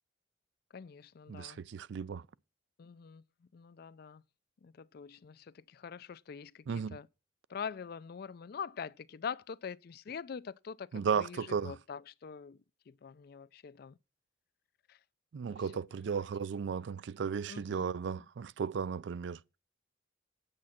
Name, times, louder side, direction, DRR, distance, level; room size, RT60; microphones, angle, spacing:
voice 1, 0.7-1.6 2.8-4.2 4.6-7.1 7.5-14.0 14.9-15.0 15.4-16.3 17.5-18.3, left 6 dB, 50° left, 0.4 m, -45 dB
voice 2, 1.3-2.2 6.7-7.0 10.9-11.7 15.3-19.4, right 6 dB, 65° right, 0.4 m, -35 dB
8.6 x 8.5 x 4.3 m
head